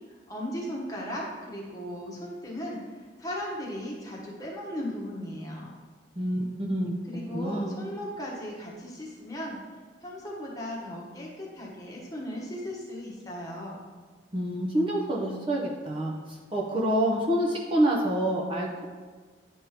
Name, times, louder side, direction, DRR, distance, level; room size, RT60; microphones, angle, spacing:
voice 1, 0.3-2.8 3.2-5.7 7.1-9.6 10.0-13.8, equal, 20° left, -4 dB, 1.1 m, -37 dB
voice 2, 6.2-7.0 7.3-7.7 14.3-16.1 16.5-18.8, right 1 dB, 25° right, -2 dB, 0.6 m, -27 dB
10.0 x 3.6 x 2.9 m, 1.5 s
head